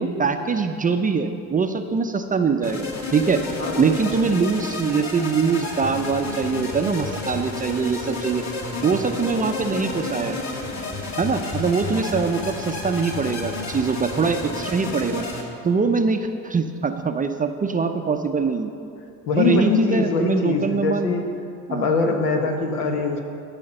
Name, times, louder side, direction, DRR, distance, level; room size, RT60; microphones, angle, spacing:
voice 1, 0.0-3.4 3.8-8.5 8.8-10.4 11.2-15.2 15.6-18.7 19.4-21.1 21.7-21.9, right 5 dB, 20° right, 6 dB, 0.5 m, -23 dB
sound 1, 2.6-15.4, left 3 dB, 35° left, 1.8 m, -31 dB
voice 2, 19.3-21.3 21.7-23.2, left 4 dB, 80° left, 3 dB, 1.3 m, -22 dB
13.0 x 5.7 x 5.5 m, 2.5 s
hypercardioid pair, 70°, 45 cm